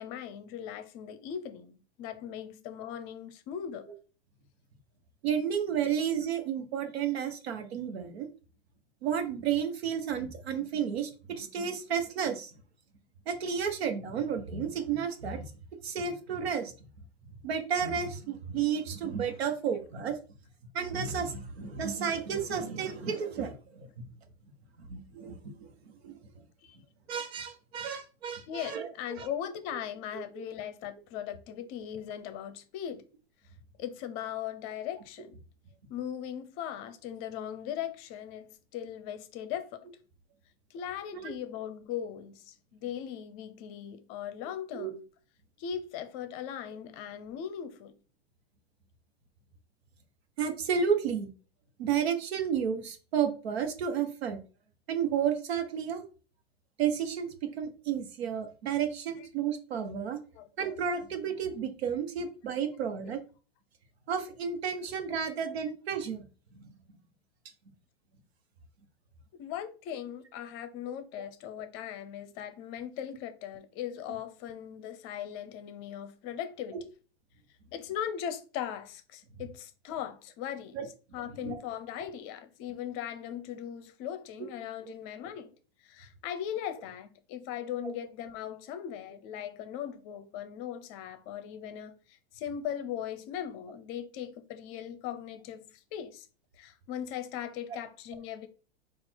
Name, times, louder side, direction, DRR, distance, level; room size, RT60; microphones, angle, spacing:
voice 1, 0.0-3.9 26.6-26.8 28.5-33.0 33.8-35.4 35.9-39.8 40.7-45.0 45.6-47.9 59.2-59.3 60.3-60.5 63.0-63.2 69.3-76.8 77.7-85.5 85.8-96.3 96.5-98.5, left 9 dB, 40° left, 0.7 m, -39 dB
voice 2, 5.2-8.3 9.0-12.5 13.3-15.5 15.8-16.7 17.4-20.2 20.7-24.1 24.8-25.7 26.0-26.1 27.1-29.3 30.1-30.4 41.1-41.3 44.7-44.9 50.4-51.3 51.8-54.4 54.9-56.0 56.8-57.3 57.6-60.2 60.6-63.2 64.1-66.2 66.5-66.7 70.9-71.0 74.1-74.2 80.7-80.9 81.3-81.6 84.9-85.0 87.8-87.9, right 7 dB, 75° right, 1.1 m, -32 dB
4.2 x 2.5 x 4.5 m
hypercardioid pair, 120°, 32 cm